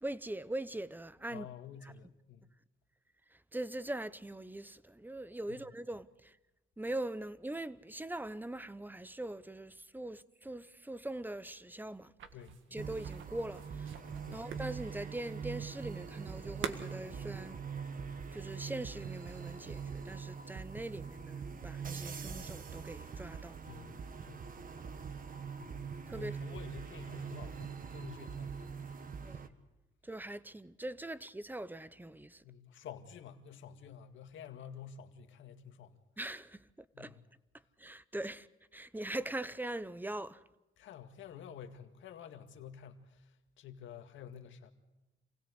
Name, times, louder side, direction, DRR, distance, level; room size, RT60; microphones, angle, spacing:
voice 1, 0.0-1.5 3.3-6.4 6.8-12.1 12.7-13.9 14.3-17.6 18.3-23.6 26.1-26.4 29.2-29.5 30.0-32.4 36.2-37.2 37.8-38.5 38.7-40.4, right 1 dB, 10° right, 0.8 m, -42 dB
voice 2, 1.3-2.5 5.5-5.6 12.3-12.8 14.3-14.5 23.7-24.4 25.6-25.8 26.1-28.7 32.4-36.0 36.9-37.3 40.8-44.7, left 8 dB, 75° left, 2.0 m, -50 dB
sound 1, 12.2-17.5, right 8 dB, 75° right, 1.8 m, -46 dB
sound 2, 12.8-29.5, right 6 dB, 45° right, 1.6 m, -43 dB
27.5 x 17.0 x 8.1 m
cardioid pair, 90°, 20 cm